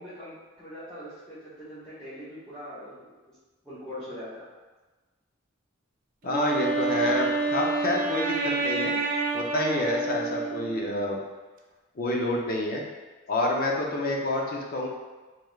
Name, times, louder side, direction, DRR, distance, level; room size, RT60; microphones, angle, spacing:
voice 1, 0.0-3.1 3.6-4.5 7.1-7.4, equal, 5° left, -16 dB, 0.9 m, -42 dB
voice 2, 6.2-9.0 9.3-11.2 12.0-12.8 13.3-14.9, left 1 dB, 50° left, -1 dB, 0.5 m, -28 dB
Wind instrument woodwind instrument, 6.3-11.0, right 3 dB, 45° right, 0.4 m, -28 dB
3.5 x 3.1 x 2.3 m, 1.2 s
head